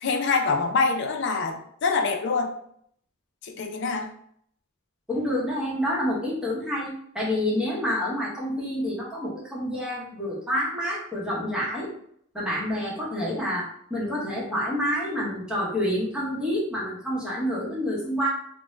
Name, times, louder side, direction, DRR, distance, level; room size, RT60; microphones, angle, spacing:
voice 1, 0.0-2.5 3.4-4.1, left 4 dB, 55° left, 4 dB, 0.4 m, -25 dB
voice 2, 5.1-11.9 12.3-18.3, equal, 5° right, -6 dB, 0.8 m, -28 dB
2.6 x 2.1 x 3.1 m, 0.67 s
head